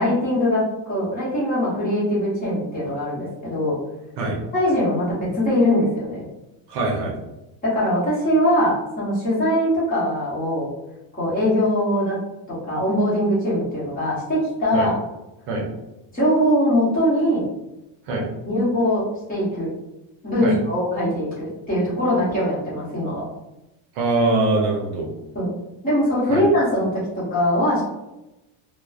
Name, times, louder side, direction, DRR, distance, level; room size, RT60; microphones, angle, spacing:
voice 1, 0.0-3.8 4.5-6.2 7.6-10.7 11.2-12.2 12.5-14.9 16.1-17.4 18.4-19.0 19.3-19.7 20.2-23.2 25.3-25.5 25.8-27.8, equal, 15° left, -9 dB, 0.9 m, -21 dB
voice 2, 6.7-7.2 14.7-14.9 15.5-15.7 18.1-18.3 20.4-20.6 23.9-25.1 26.3-26.4, right 2 dB, 55° right, -1 dB, 0.7 m, -23 dB
2.9 x 2.0 x 2.3 m, 0.94 s
cardioid pair, 175°, 50 cm